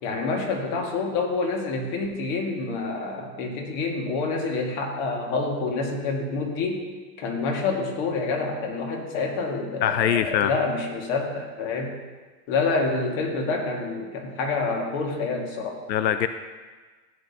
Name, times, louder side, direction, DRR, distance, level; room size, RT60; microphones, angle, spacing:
voice 1, 0.0-6.9 7.2-11.9 12.5-15.8, left 3 dB, 40° left, 1 dB, 2.0 m, -27 dB
voice 2, 9.8-10.5 15.9-16.3, left 10 dB, 90° left, 10 dB, 0.7 m, -22 dB
15.0 x 8.7 x 2.8 m, 1.4 s
hypercardioid pair, 140°, 50 cm